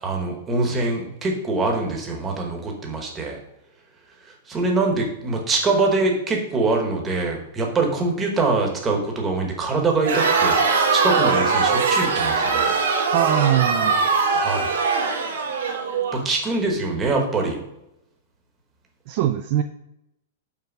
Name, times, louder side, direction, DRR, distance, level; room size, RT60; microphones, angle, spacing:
voice 1, 0.0-3.4 4.5-10.6 10.9-12.8 14.3-14.7 16.1-17.6, right 3 dB, 10° right, 1 dB, 1.1 m, -24 dB
Crowd, 10.0-16.2, right 4 dB, 85° right, 1.5 m, -21 dB
voice 2, 13.1-14.1 19.1-19.6, right 11 dB, 35° right, 7 dB, 0.3 m, -21 dB
5.8 x 4.5 x 5.3 m, 0.86 s
supercardioid pair, 175°, 0 cm